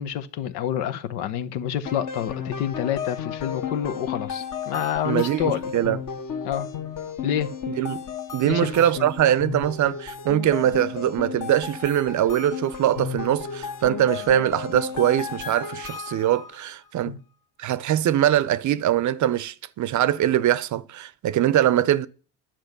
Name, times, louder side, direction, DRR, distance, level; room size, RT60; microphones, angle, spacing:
voice 1, 0.0-5.6 6.4-6.7 7.2-7.5 8.4-9.0 17.1-17.2, left 10 dB, 85° left, 1.1 m, -28 dB
sound 1, 1.9-16.6, left 7 dB, 45° left, 1.3 m, -33 dB
voice 2, 5.0-6.0 7.7-8.0 8.3-17.2 17.6-22.1, right 11 dB, 45° right, 0.6 m, -22 dB
10.5 x 6.1 x 6.7 m
cardioid pair, 105°, 42 cm